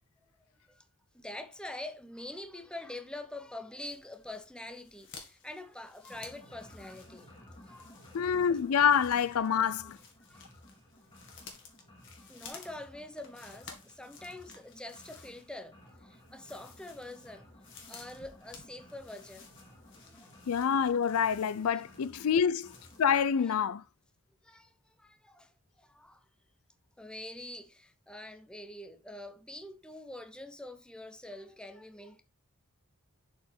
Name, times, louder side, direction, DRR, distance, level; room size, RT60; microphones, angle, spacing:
voice 1, 1.1-7.3 7.6-8.0 9.6-9.9 10.3-10.5 12.2-17.5 17.9-19.5 20.0-20.3 21.6-21.8 22.2-22.3 23.4-23.6 24.4-26.3 27.0-32.2, left 1 dB, 5° left, 0.7 m, -45 dB
sound 1, 3.8-23.3 23.6-23.7, left 5 dB, 60° left, 2.0 m, -55 dB
sound 2, 6.1-23.3, left 1 dB, 25° left, 2.3 m, -56 dB
voice 2, 8.1-10.0 20.5-22.7 23.0-23.8, left 7 dB, 80° left, 0.4 m, -27 dB
7.3 x 4.9 x 4.4 m
head